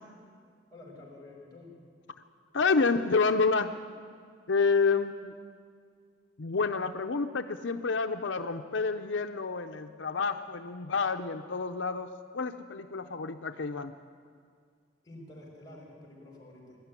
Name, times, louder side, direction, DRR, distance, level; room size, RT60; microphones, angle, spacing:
voice 1, 0.7-1.7 15.0-16.8, left 2 dB, 20° left, -1 dB, 5.7 m, -49 dB
voice 2, 2.5-3.8 4.5-5.3 6.4-13.9, left 4 dB, 80° left, 7 dB, 0.7 m, -29 dB
22.0 x 12.5 x 9.7 m, 2.1 s
head